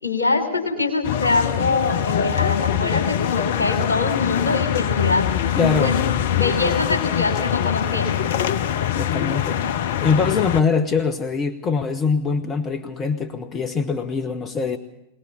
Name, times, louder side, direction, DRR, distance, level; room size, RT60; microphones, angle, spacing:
voice 1, 0.0-5.3 5.8-5.9 6.2-8.2, left 3 dB, 75° left, 3 dB, 4.2 m, -23 dB
sound 1, 1.0-10.6, left 9 dB, 55° left, 0.7 m, -23 dB
voice 2, 5.6-6.0 9.0-9.6 10.0-14.8, left 5 dB, 25° left, 8 dB, 1.2 m, -23 dB
22.0 x 20.0 x 6.9 m, 0.85 s
figure-of-eight pair, 90°, 0 cm